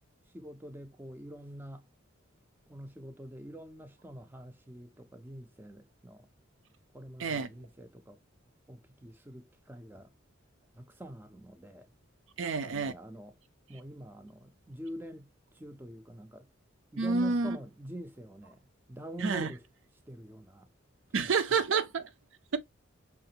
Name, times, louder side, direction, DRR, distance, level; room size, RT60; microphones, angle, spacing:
voice 1, 0.3-1.9 2.7-6.3 6.9-8.2 8.7-10.1 10.7-11.9 12.4-13.3 13.7-16.5 16.9-18.6 18.9-19.6 20.1-20.7 21.2-21.3, right 1 dB, 10° right, 0.4 m, -45 dB
voice 2, 12.4-12.9 17.0-17.6 19.2-19.5 21.1-22.1, right 4 dB, 70° right, 0.6 m, -29 dB
5.6 x 2.5 x 2.8 m
head